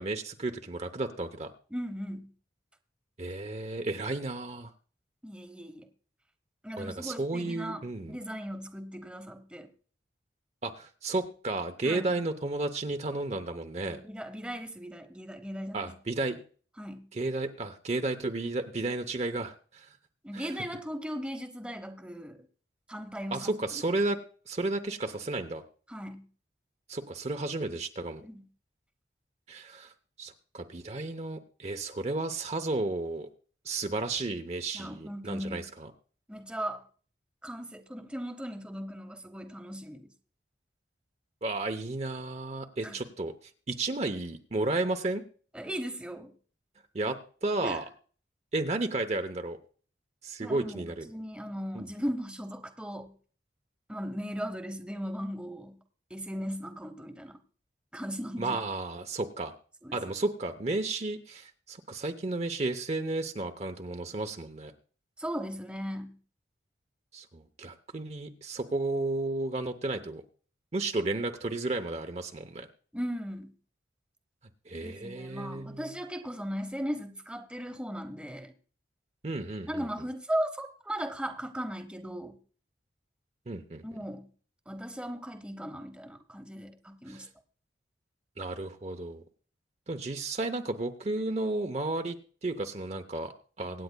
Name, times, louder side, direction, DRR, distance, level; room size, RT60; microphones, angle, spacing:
voice 1, 0.0-1.5 3.2-4.7 6.8-8.2 10.6-14.0 15.7-16.4 17.1-19.9 20.3-20.5 23.3-24.2 24.5-25.6 26.9-28.2 29.5-29.9 30.2-33.3 33.6-35.9 41.4-43.3 43.7-45.2 46.9-47.8 48.5-49.6 50.2-51.1 51.7-51.8 58.4-59.5 59.9-64.7 67.1-70.2 70.7-72.7 74.7-75.8 79.2-79.9 83.5-83.8 87.1-87.3 88.4-89.2 89.9-92.2 92.4-93.8, right 2 dB, 35° right, 0.7 m, -33 dB
voice 2, 1.7-2.3 5.2-5.9 6.6-9.7 11.8-12.2 13.9-15.9 16.8-17.1 20.2-22.5 22.9-23.6 23.9-24.0 25.9-26.3 28.2-28.4 34.7-35.7 36.3-36.9 37.4-40.1 42.8-43.1 45.5-46.3 47.6-47.8 50.4-53.1 53.9-55.8 56.1-57.4 57.9-58.6 59.8-60.0 65.2-66.2 72.9-73.5 74.8-78.5 79.7-82.4 83.8-84.3 84.7-87.3, equal, 5° right, 0.9 m, -37 dB
24.5 x 9.3 x 2.3 m
head